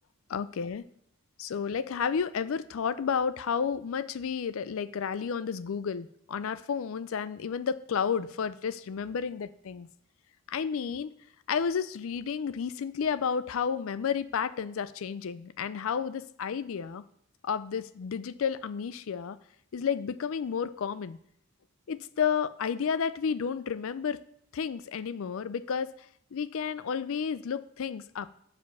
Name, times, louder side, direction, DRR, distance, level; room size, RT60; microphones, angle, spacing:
voice 1, 0.3-0.8 1.4-9.9 10.5-11.1 11.5-17.0 17.4-19.4 19.7-21.2 21.9-24.2 24.5-25.9 26.3-28.3, left 6 dB, 65° left, 15 dB, 0.4 m, -31 dB
6.5 x 4.9 x 6.8 m, 0.69 s
head